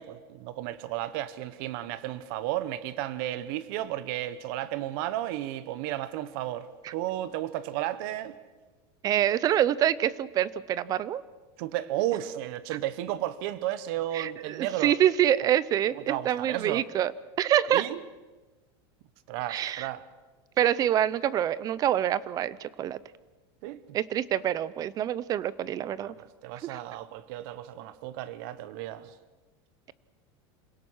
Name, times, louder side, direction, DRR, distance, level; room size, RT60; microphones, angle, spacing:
voice 1, 0.0-8.3 11.6-14.9 15.9-16.9 17.7-18.0 19.3-20.0 23.6-24.0 26.0-29.1, right 13 dB, 55° right, 1.2 m, -33 dB
voice 2, 9.0-11.2 14.1-17.1 17.4-17.9 19.5-19.9 20.6-23.0 23.9-26.1 26.6-26.8, right 11 dB, 25° right, 0.6 m, -26 dB
27.0 x 17.5 x 6.4 m
supercardioid pair, 160°, 14 cm